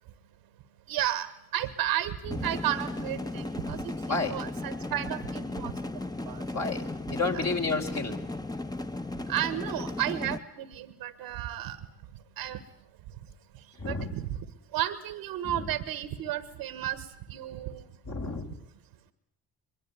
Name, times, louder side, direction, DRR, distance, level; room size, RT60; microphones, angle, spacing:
voice 1, 0.9-5.8 6.2-6.4 7.3-7.4 9.3-11.8 12.4-12.6 13.8-14.4 14.7-17.8, right 12 dB, 85° right, 14 dB, 1.5 m, -33 dB
sound 1, 2.3-10.4, left 2 dB, 10° left, 1.3 m, -36 dB
voice 2, 4.1-4.4 6.5-8.2 13.8-14.1 15.4-15.6 18.1-18.5, left 3 dB, 45° left, 2 dB, 4.7 m, -31 dB
23.0 x 22.5 x 9.5 m, 0.74 s
hypercardioid pair, 50°, 36 cm